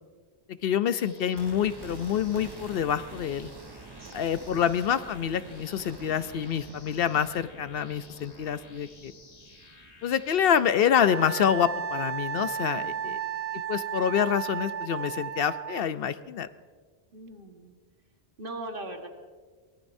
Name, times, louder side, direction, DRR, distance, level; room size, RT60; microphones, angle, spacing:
voice 1, 0.5-3.5 4.1-9.1 10.0-13.2 13.7-16.5, left 8 dB, 70° left, 12 dB, 0.8 m, -27 dB
sound 1, 1.0-10.6, left 3 dB, 40° left, 1.3 m, -54 dB
sound 2, 1.4-11.4 11.7-11.8, right 4 dB, 30° right, 0.5 m, -48 dB
voice 2, 4.0-4.6 12.7-13.4 17.1-17.8 18.4-19.1, right 2 dB, 60° right, 3 dB, 1.7 m, -41 dB
Wind instrument woodwind instrument, 11.0-15.9, right 8 dB, 75° right, 0.8 m, -34 dB
23.5 x 18.5 x 2.7 m, 1.5 s
omnidirectional pair, 1.1 m